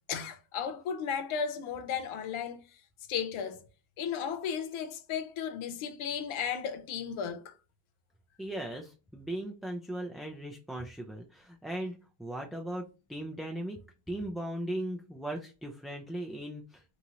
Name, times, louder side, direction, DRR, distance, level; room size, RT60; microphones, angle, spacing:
voice 1, 0.1-2.6 3.1-3.6 4.0-7.5, left 7 dB, 70° left, 0.7 m, -34 dB
voice 2, 8.4-13.8 14.1-16.8, right 1 dB, ahead, 0.3 m, -38 dB
3.0 x 2.4 x 2.8 m
cardioid pair, 80°, 50 cm